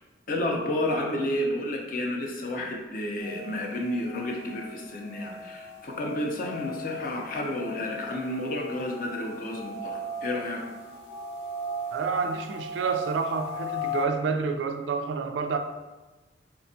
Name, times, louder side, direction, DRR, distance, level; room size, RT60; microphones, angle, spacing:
voice 1, 0.3-10.6, left 1 dB, 50° left, 1 dB, 0.5 m, -31 dB
sound 1, 3.2-14.0, left 2 dB, 75° left, 0.8 m, -38 dB
voice 2, 11.9-15.6, right 5 dB, 75° right, 6 dB, 0.3 m, -29 dB
4.2 x 2.2 x 2.6 m, 1.2 s
head